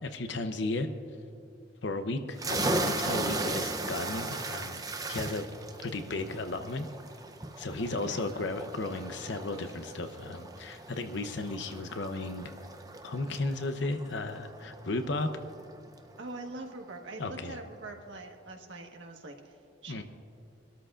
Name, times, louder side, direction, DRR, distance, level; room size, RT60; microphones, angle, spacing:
voice 1, 0.0-0.9 1.8-4.8 5.1-5.5 5.8-6.9 7.6-12.5 13.0-15.3 17.2-17.6 19.9-20.0, left 2 dB, 70° left, 7 dB, 0.7 m, -34 dB
sound 1, 2.4-15.7, right 2 dB, 20° right, 0.6 m, -37 dB
voice 2, 16.2-20.0, right 2 dB, 75° right, 2 dB, 1.4 m, -43 dB
24.5 x 13.0 x 2.5 m, 2.5 s
head